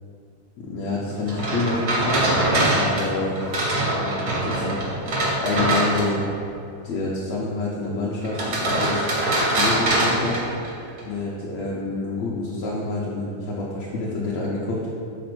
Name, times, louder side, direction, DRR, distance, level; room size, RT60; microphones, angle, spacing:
voice 1, 0.6-2.3 2.7-3.4 3.9-4.7 5.4-6.2 6.8-9.0 9.5-10.4 11.1-14.8, left 3 dB, 75° left, -6 dB, 1.6 m, -27 dB
sound 1, 1.3-6.3 8.2-11.0, right 1 dB, 85° right, 0.8 m, -23 dB
5.1 x 4.2 x 6.0 m, 2.5 s
omnidirectional pair, 3.7 m